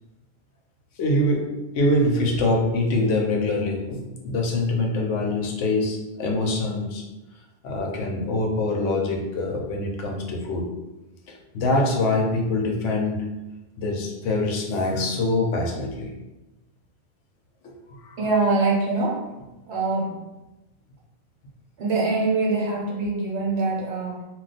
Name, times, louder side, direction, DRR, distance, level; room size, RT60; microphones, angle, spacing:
voice 1, 1.0-7.0 7.6-10.7 11.3-13.3 13.8-16.1 18.0-18.2, left 2 dB, 80° left, 0 dB, 1.0 m, -24 dB
voice 2, 18.2-19.3 19.7-20.2 21.8-24.2, right 3 dB, 65° right, -3 dB, 1.0 m, -24 dB
2.3 x 2.3 x 3.9 m, 1.0 s
omnidirectional pair, 1.2 m